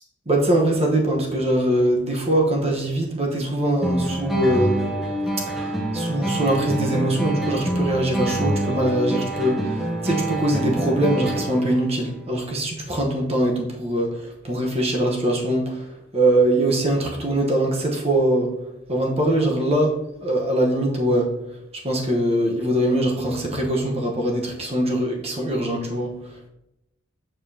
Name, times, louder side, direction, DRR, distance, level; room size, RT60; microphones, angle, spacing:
voice 1, 0.3-4.9 5.5-15.8 16.1-18.5 18.9-21.3 21.8-26.1, right 1 dB, 30° right, 0 dB, 1.0 m, -22 dB
sound 1, 3.8-11.8, right 1 dB, ahead, 0.7 m, -26 dB
6.8 x 5.5 x 2.8 m, 0.88 s
head